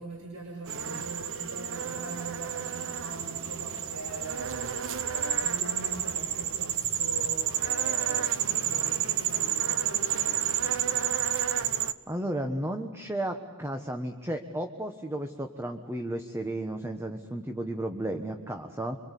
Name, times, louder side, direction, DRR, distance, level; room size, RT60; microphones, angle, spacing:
voice 1, 0.0-10.7, right 2 dB, 80° right, 1 dB, 6.1 m, -42 dB
sound 1, 0.7-11.9, right 9 dB, 65° right, 1.1 m, -30 dB
voice 2, 12.1-19.0, right 1 dB, 10° right, 5 dB, 1.3 m, -33 dB
26.0 x 26.0 x 8.4 m, 1.5 s
head